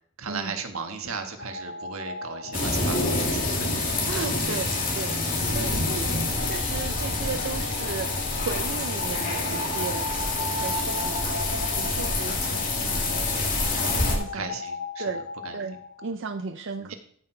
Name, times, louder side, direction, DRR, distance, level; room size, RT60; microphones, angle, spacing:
voice 1, 0.2-3.7 5.8-6.0 11.8-12.4 14.3-15.1 15.4-15.6 16.8-17.0, right 5 dB, 85° right, 5 dB, 1.4 m, -36 dB
sound 1, 1.4-16.1, left 2 dB, 75° left, 0.9 m, -38 dB
sound 2, 2.5-14.2, left 2 dB, 40° left, 2.1 m, -27 dB
voice 2, 4.1-13.3 13.7-14.5 15.0-15.3 15.5-16.9, right 4 dB, 60° right, 7 dB, 0.5 m, -36 dB
13.5 x 5.9 x 4.5 m, 0.62 s
head